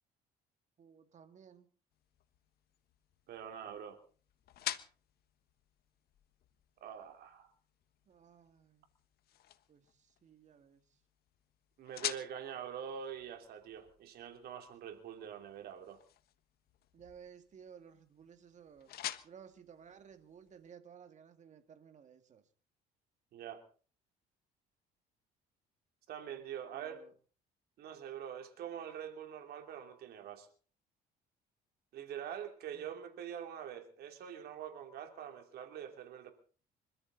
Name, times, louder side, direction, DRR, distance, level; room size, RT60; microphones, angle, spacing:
voice 1, 0.8-1.7 8.1-8.8 9.7-11.0 16.9-19.0 19.2-22.4 26.7-27.1 32.7-32.9, right 7 dB, 45° right, 2.2 m, -57 dB
sound 1, 1.9-20.7, left 13 dB, 70° left, 1.4 m, -49 dB
voice 2, 3.3-4.0 6.8-7.5 11.8-16.0 23.3-23.6 26.1-27.0 27.8-30.5 31.9-36.3, right 9 dB, 70° right, 3.1 m, -45 dB
26.0 x 13.5 x 4.1 m
cardioid pair, 110°, 17 cm